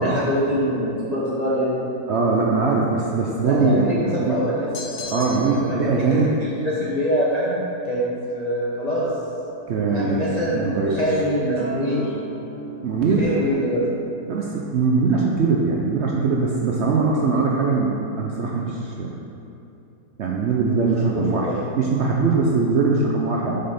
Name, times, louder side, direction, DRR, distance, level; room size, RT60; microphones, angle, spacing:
voice 1, 0.0-1.9 3.4-5.8 6.1-9.1 9.9-12.1 13.2-13.8 20.7-21.6 23.4-23.5, equal, 35° left, -7 dB, 0.7 m, -25 dB
voice 2, 2.1-4.4 5.1-6.3 9.7-10.2 10.5-11.0 12.8-13.2 14.3-19.1 20.2-23.5, right 4 dB, 75° right, -2 dB, 0.6 m, -21 dB
sound 1, 4.7-5.7, left 5 dB, 60° left, 0.8 m, -35 dB
Acoustic guitar, 11.6-16.8, right 2 dB, 25° right, 1.3 m, -40 dB
6.7 x 5.4 x 4.1 m, 2.7 s
omnidirectional pair, 1.8 m